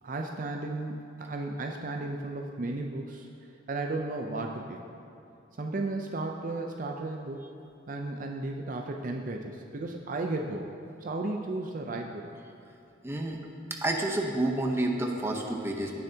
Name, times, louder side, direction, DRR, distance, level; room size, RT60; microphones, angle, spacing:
voice 1, 0.0-3.3 3.7-4.8 5.6-7.4 7.9-10.7 11.0-12.3, right 2 dB, 45° right, 2 dB, 0.5 m, -34 dB
voice 2, 13.0-13.4 13.8-16.0, right 1 dB, 15° right, 1 dB, 0.8 m, -29 dB
16.5 x 7.0 x 2.8 m, 2.7 s
head